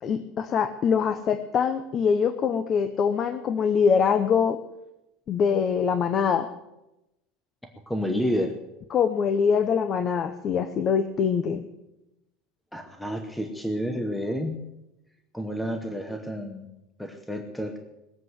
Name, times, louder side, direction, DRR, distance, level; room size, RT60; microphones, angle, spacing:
voice 1, 0.0-4.6 5.3-6.5 8.9-11.6, left 6 dB, 25° left, 11 dB, 0.7 m, -23 dB
voice 2, 7.9-8.6 12.7-14.6 15.3-16.7 17.0-17.8, equal, 5° left, 5 dB, 1.0 m, -30 dB
20.0 x 7.6 x 8.0 m, 0.94 s
cardioid pair, 170°, 0 cm